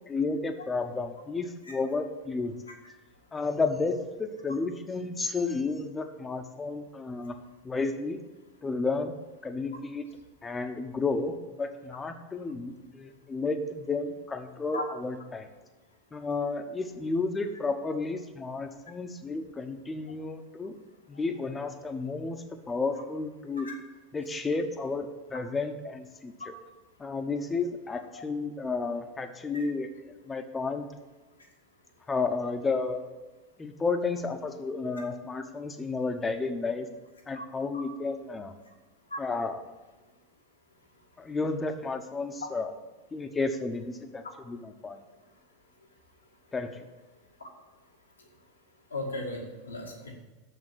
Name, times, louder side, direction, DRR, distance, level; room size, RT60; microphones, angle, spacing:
voice 1, 0.1-2.6 3.3-7.4 7.6-8.2 8.6-9.1 9.4-10.1 10.4-15.5 16.1-20.7 21.1-23.7 24.1-26.6 27.0-30.9 32.1-33.1 33.6-36.9 37.3-38.5 39.2-39.6 41.2-42.7 43.1-45.1 46.5-46.9, left 3 dB, 20° left, 7 dB, 1.0 m, -32 dB
voice 2, 48.9-50.1, left 1 dB, 85° left, 0 dB, 1.8 m, -36 dB
7.0 x 6.5 x 7.5 m, 1.1 s
figure-of-eight pair, 85°, 0 cm